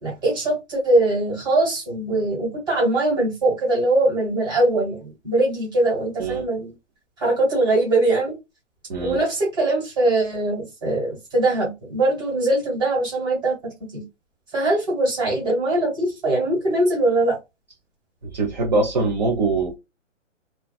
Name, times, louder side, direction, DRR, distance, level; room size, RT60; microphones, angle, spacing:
voice 1, 0.0-6.7 7.2-8.3 9.0-13.6 13.9-14.0 14.5-17.4, right 2 dB, 10° right, 1.2 m, -21 dB
voice 2, 18.2-19.8, right 3 dB, 35° right, 0.5 m, -23 dB
2.5 x 2.2 x 2.3 m
hypercardioid pair, 150°, 38 cm